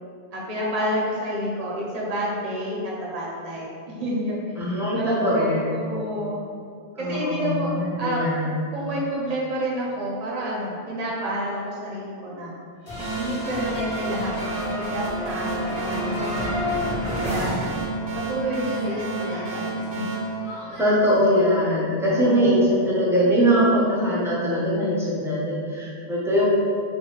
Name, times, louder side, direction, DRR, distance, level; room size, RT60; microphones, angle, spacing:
voice 1, 0.3-4.4 5.0-6.4 7.0-7.7 8.0-8.2 8.7-12.6 13.2-16.6 17.2-17.5 18.3-20.1 22.1-22.6, equal, 45° right, -5 dB, 0.7 m, -29 dB
voice 2, 4.6-5.6 7.0-8.6 20.7-26.4, equal, 5° right, -7 dB, 0.5 m, -22 dB
sound 1, 12.9-18.3 18.6-20.9, left 1 dB, 70° left, 1.2 m, -31 dB
sound 2, 13.0-21.3, right 2 dB, 75° right, 0.9 m, -31 dB
3.0 x 2.7 x 2.9 m, 2.3 s
omnidirectional pair, 1.0 m